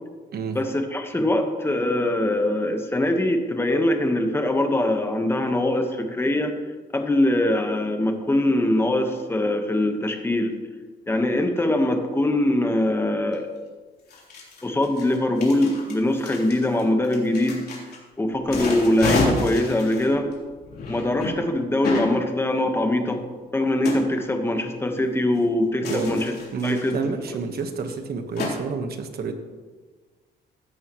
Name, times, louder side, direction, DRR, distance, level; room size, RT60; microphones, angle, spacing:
voice 1, 0.5-6.5 6.9-10.5 11.1-13.5 14.6-17.7 18.2-20.3 20.9-23.2 23.5-26.3 26.6-27.1, left 1 dB, 10° left, 4 dB, 1.4 m, -22 dB
sound 1, 13.3-13.4 14.1-18.0 18.4-21.3 21.8-22.1 23.8-24.0 25.8-27.1 27.6-27.7 27.9-28.0 28.4-28.5, left 3 dB, 60° left, 3.6 m, -29 dB
voice 2, 25.8-26.2 26.5-29.3, right 5 dB, 55° right, 6 dB, 1.4 m, -29 dB
16.0 x 11.5 x 3.2 m, 1.4 s
cardioid pair, 135°, 19 cm